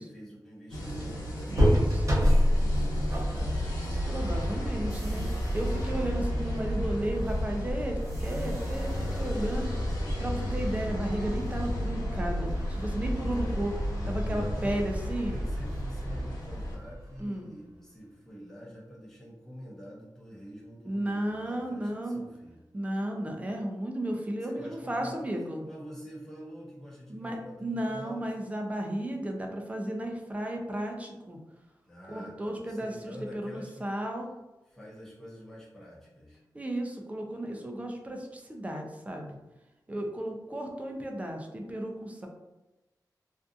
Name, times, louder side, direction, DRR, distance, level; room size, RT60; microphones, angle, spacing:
voice 1, 0.0-3.6 13.3-13.7 14.2-14.8 15.1-22.6 24.4-25.3 25.6-28.3 31.8-33.9 34.7-36.4, equal, 5° left, -6 dB, 0.7 m, -46 dB
sound 1, 0.7-16.8, equal, 75° left, 1.0 m, -37 dB
voice 2, 1.5-2.0 4.1-5.3 5.5-9.8 10.2-13.7 14.1-15.3 17.2-17.5 20.9-22.2 22.7-25.7 27.1-31.4 32.1-34.3 36.5-39.4 39.9-42.3, right 1 dB, 20° right, 2 dB, 0.4 m, -34 dB
sound 2, 1.5-17.3, equal, 45° right, 0.8 m, -30 dB
2.6 x 2.4 x 2.3 m, 1.0 s
wide cardioid pair, 125°, 7 cm